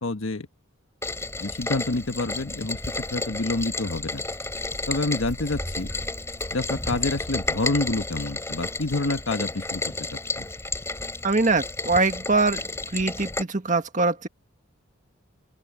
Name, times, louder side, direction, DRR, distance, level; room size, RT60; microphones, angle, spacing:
voice 1, 0.0-0.5 1.4-2.8 3.1-4.2 4.9-5.9 6.5-9.8 10.4-10.5, left 2 dB, 70° left, 1.3 m, -27 dB
Rain, 1.0-13.4, left 2 dB, 15° left, 3.1 m, -32 dB
Walk footsteps, 2.7-9.8, equal, 15° right, 1.5 m, -42 dB
voice 2, 11.2-14.3, right 3 dB, 35° right, 1.7 m, -23 dB
open air
head